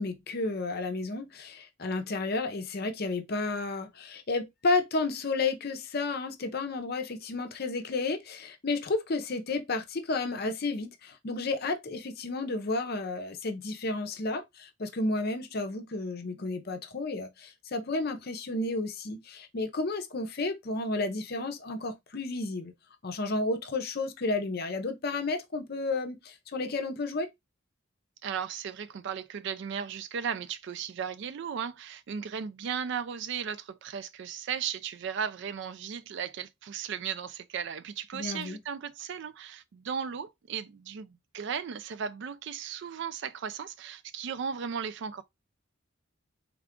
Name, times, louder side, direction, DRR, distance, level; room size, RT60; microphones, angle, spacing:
voice 1, 0.0-22.7 23.0-27.3 38.1-38.6, left 3 dB, 50° left, 0.6 m, -32 dB
voice 2, 28.2-45.2, right 7 dB, 55° right, 0.3 m, -36 dB
3.6 x 2.4 x 3.5 m
head